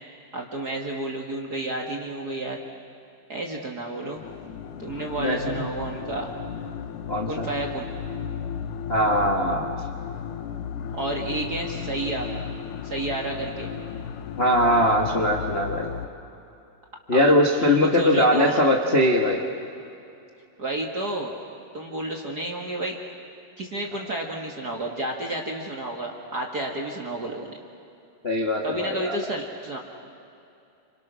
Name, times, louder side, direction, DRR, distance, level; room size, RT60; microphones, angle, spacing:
voice 1, 0.3-2.6 3.3-4.2 4.8-6.3 7.3-7.9 10.9-12.3 12.8-13.7 17.1-17.3 17.6-18.6 20.6-21.4 21.7-23.0 23.6-27.6 28.6-29.8, right 1 dB, 40° right, 0 dB, 1.4 m, -31 dB
sound 1, 4.2-16.1, left 7 dB, 85° left, 3.0 m, -35 dB
voice 2, 5.2-5.7 7.1-7.5 8.9-9.8 14.4-15.9 17.1-19.4 28.2-29.1, left 1 dB, 70° left, -1 dB, 0.6 m, -21 dB
29.5 x 26.5 x 6.4 m, 2.7 s
omnidirectional pair, 4.5 m